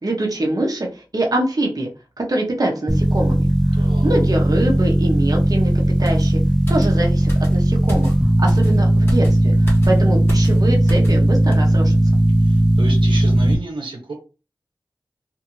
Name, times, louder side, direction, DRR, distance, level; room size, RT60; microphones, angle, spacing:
voice 1, 0.0-1.9 2.2-3.5 4.0-5.7 6.0-6.4 6.7-8.1 8.4-12.0, right 1 dB, 50° right, 0 dB, 0.8 m, -24 dB
sound 1, 2.9-13.5, right 1 dB, 10° right, 0.8 m, -17 dB
voice 2, 3.8-4.1 12.4-14.1, right 2 dB, 85° right, 1 dB, 0.8 m, -31 dB
sound 2, 6.0-11.2 11.5-11.7, equal, 25° left, 1.4 m, -32 dB
2.6 x 2.5 x 2.9 m, 0.32 s
wide cardioid pair, 40°, 8 cm